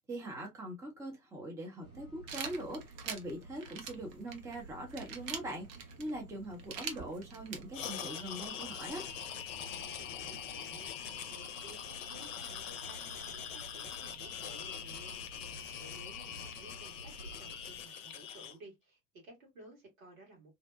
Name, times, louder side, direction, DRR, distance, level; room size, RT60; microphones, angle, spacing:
voice 1, 0.1-9.1, right 1 dB, 5° right, 0.6 m, -42 dB
sound 1, 1.8-17.8, right 2 dB, 85° right, 1.3 m, -54 dB
sound 2, 2.3-8.2, right 7 dB, 45° right, 0.6 m, -44 dB
sound 3, 7.7-18.5, left 8 dB, 60° left, 0.6 m, -43 dB
voice 2, 9.9-20.5, right 2 dB, 65° right, 1.5 m, -56 dB
2.7 x 2.1 x 2.2 m
figure-of-eight pair, 75°, 43 cm